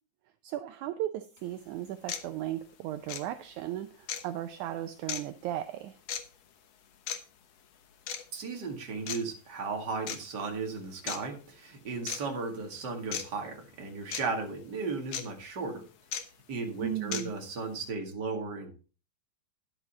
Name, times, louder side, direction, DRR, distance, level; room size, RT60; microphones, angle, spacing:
voice 1, 0.4-6.0 16.8-17.3, right 13 dB, 80° right, 9 dB, 1.8 m, -36 dB
sound 1, 1.4-1.5 2.1-2.3 3.1-3.2 4.1-4.2 5.1-5.2 6.1-6.2 7.1-7.2 8.1-8.2 9.1-9.2 10.1-10.2 11.1-11.2 12.1-12.2 13.1-13.2 14.1-14.2 15.1-15.2 16.1-16.2 17.1-17.2, left 9 dB, 65° left, 1.7 m, -34 dB
voice 2, 8.3-15.8 16.5-18.7, right 4 dB, 35° right, 1 dB, 2.2 m, -35 dB
11.0 x 8.1 x 4.2 m, 0.36 s
omnidirectional pair, 4.1 m